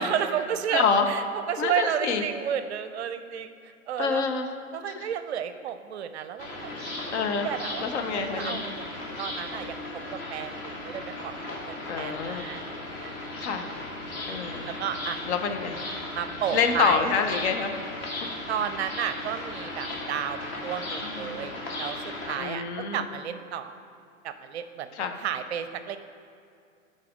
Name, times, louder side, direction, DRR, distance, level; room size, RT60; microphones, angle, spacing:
voice 1, 0.0-4.3 4.7-6.7 7.4-7.9 8.1-9.8 10.1-13.1 14.7-15.2 16.1-17.1 18.5-23.8 24.2-26.0, right 9 dB, 50° right, 10 dB, 0.6 m, -32 dB
voice 2, 0.7-1.1 1.6-2.2 4.0-4.5 7.1-7.5 7.8-8.6 11.9-12.4 13.4-13.7 14.3-14.7 15.3-15.8 16.5-17.7 18.2-18.3 21.0-21.3 22.4-23.0 25.0-25.1, left 6 dB, 50° left, 6 dB, 0.9 m, -27 dB
sound 1, 6.4-22.4, left 2 dB, 30° left, 1.5 m, -36 dB
11.5 x 4.2 x 6.2 m, 2.4 s
figure-of-eight pair, 110°, 42 cm